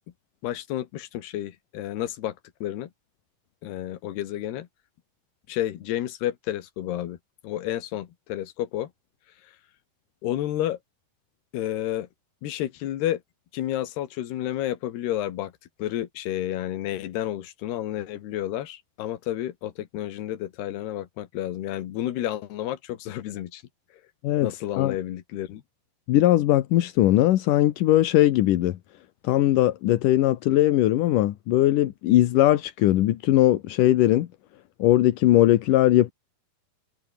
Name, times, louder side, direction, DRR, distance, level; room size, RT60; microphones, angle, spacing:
voice 1, 0.4-2.4 2.6-2.9 3.6-4.7 5.5-7.2 7.4-8.9 10.2-10.8 11.5-12.1 12.4-13.2 13.5-15.5 15.8-23.6 24.4-25.6, left 13 dB, 85° left, 3.7 m, -30 dB
voice 2, 26.1-28.7 29.2-34.3 34.8-36.1, left 14 dB, 65° left, 2.4 m, -20 dB
omnidirectional pair, 4.5 m